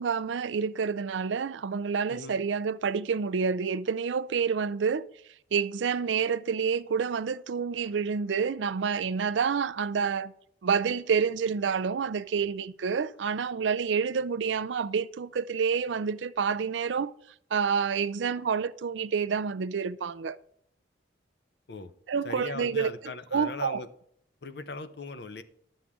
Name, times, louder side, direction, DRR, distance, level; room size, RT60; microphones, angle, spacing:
voice 1, 0.0-5.0 5.5-10.3 10.6-17.1 17.5-20.4 22.1-22.9 23.3-23.8, right 6 dB, 85° right, 0.5 m, -28 dB
voice 2, 22.2-23.9 24.4-25.4, left 3 dB, 60° left, 0.7 m, -39 dB
11.5 x 7.2 x 3.7 m
head